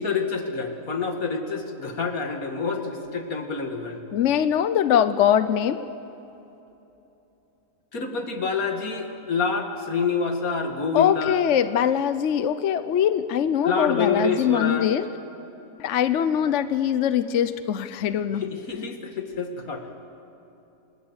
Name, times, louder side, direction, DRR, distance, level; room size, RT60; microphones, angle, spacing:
voice 1, 0.0-4.0 7.9-11.4 13.6-14.9 18.4-19.9, left 4 dB, 85° left, 5 dB, 2.5 m, -27 dB
voice 2, 4.1-5.9 10.9-15.0 15.8-18.5 18.8-18.9, left 9 dB, 65° left, 12 dB, 1.0 m, -22 dB
28.0 x 20.0 x 8.1 m, 2.9 s
omnidirectional pair, 1.5 m